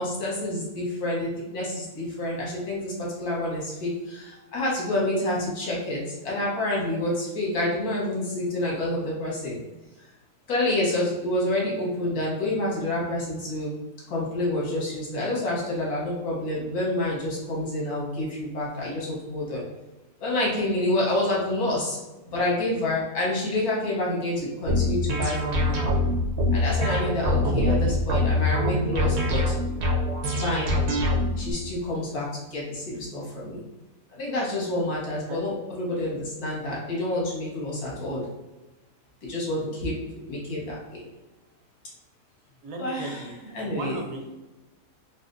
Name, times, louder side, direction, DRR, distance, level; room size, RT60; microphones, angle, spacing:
voice 1, 0.0-9.5 10.5-13.7 14.1-19.6 20.2-22.0 22.2-25.8 26.5-29.5 30.4-30.7 31.3-33.6 34.1-38.2 39.2-40.0 40.3-41.0 42.8-44.0, left 1 dB, 80° left, -5 dB, 1.7 m, -28 dB
sound 1, 24.7-31.5, left 1 dB, 90° right, 1.2 m, -24 dB
voice 2, 27.4-28.0 35.3-35.4 42.6-43.3 43.6-44.3, right 3 dB, 70° right, 2 dB, 1.0 m, -35 dB
4.2 x 2.3 x 2.6 m, 1.1 s
omnidirectional pair, 1.6 m